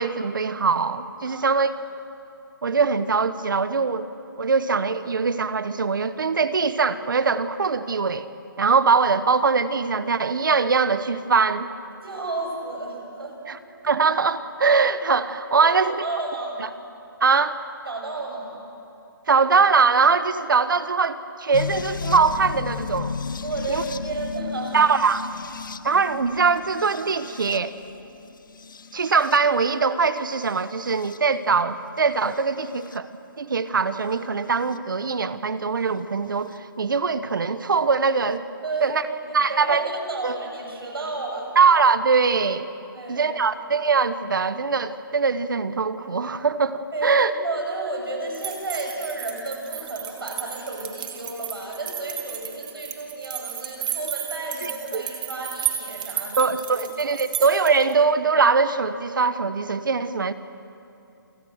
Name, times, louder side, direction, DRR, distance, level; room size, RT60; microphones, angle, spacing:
voice 1, 0.0-1.7 2.6-4.1 4.4-8.3 8.6-11.7 13.5-13.6 13.8-15.9 17.2-17.6 19.3-23.2 23.7-23.8 24.7-25.2 25.8-27.7 28.9-33.1 33.4-38.4 38.8-39.0 39.3-39.9 40.2-40.4 41.6-42.7 43.1-47.3 54.6-55.0 56.4-60.3, right 5 dB, 65° right, 13 dB, 1.2 m, -22 dB
voice 2, 1.3-1.6 12.0-13.6 15.6-16.7 17.9-18.6 23.4-24.9 38.6-41.5 42.9-43.5 46.9-56.5 56.8-57.2, right 2 dB, 90° right, 1 dB, 6.9 m, -32 dB
sound 1, 21.5-29.7 30.4-31.2 32.3-33.0 34.7-34.8 36.5-36.6, left 5 dB, 60° left, 0.8 m, -34 dB
sound 2, 48.3-57.9, right 10 dB, 25° right, 1.6 m, -33 dB
28.0 x 18.0 x 6.5 m, 2.7 s
hypercardioid pair, 180°, 12 cm